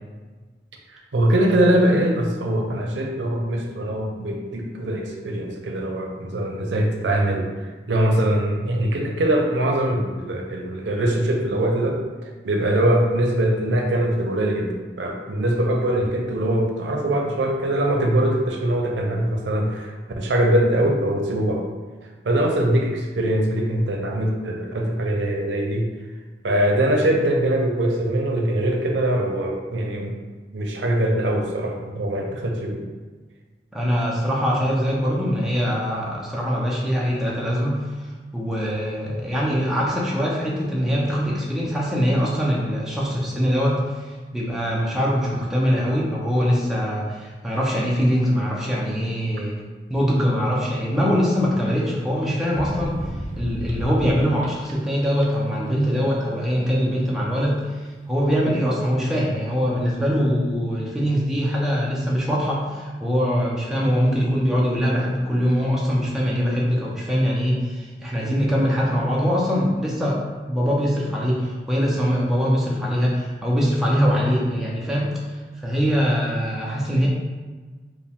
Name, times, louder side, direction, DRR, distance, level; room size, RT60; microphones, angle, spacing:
voice 1, 0.9-7.5 7.9-21.6 22.2-25.9 26.4-30.1 30.5-32.8, right 1 dB, 90° right, 2 dB, 0.6 m, -22 dB
voice 2, 33.7-38.1 38.3-49.6 49.9-77.1, equal, ahead, -5 dB, 0.6 m, -23 dB
sound 1, 52.5-54.7 55.0-55.5, right 1 dB, 40° right, 0.4 m, -32 dB
4.7 x 2.3 x 3.5 m, 1.4 s
head